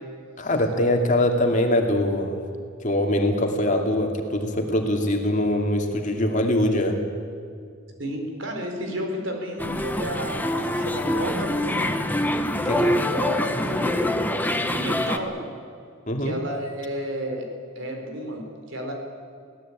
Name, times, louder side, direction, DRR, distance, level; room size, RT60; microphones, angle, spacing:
voice 1, 0.4-2.4 2.8-7.0 12.6-12.9 16.1-16.3, left 1 dB, 40° left, 3 dB, 2.5 m, -23 dB
voice 2, 8.0-12.0 12.6-14.3 14.6-15.4 16.2-17.5 17.7-18.9, equal, 65° right, 3 dB, 4.4 m, -32 dB
sound 1, 9.6-15.2, left 1 dB, 10° left, 1.2 m, -25 dB
24.0 x 17.5 x 8.8 m, 2.2 s
head